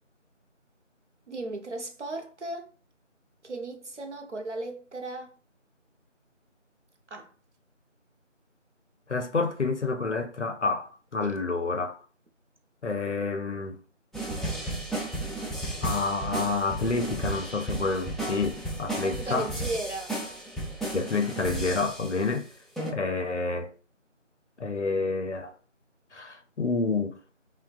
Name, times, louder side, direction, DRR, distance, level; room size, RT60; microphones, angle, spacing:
voice 1, 1.3-2.7 3.4-5.3 7.1-7.3 11.2-11.3 19.0-20.2, right 2 dB, 65° right, 0.6 m, -36 dB
voice 2, 9.1-12.0 12.8-13.8 15.8-19.5 20.9-22.5 22.9-23.7 24.6-25.5 26.1-27.2, left 4 dB, 65° left, 0.5 m, -28 dB
sound 1, 14.1-22.3 22.8-22.9, right 1 dB, ahead, 0.4 m, -34 dB
3.0 x 2.2 x 2.4 m
figure-of-eight pair, 180°, 38 cm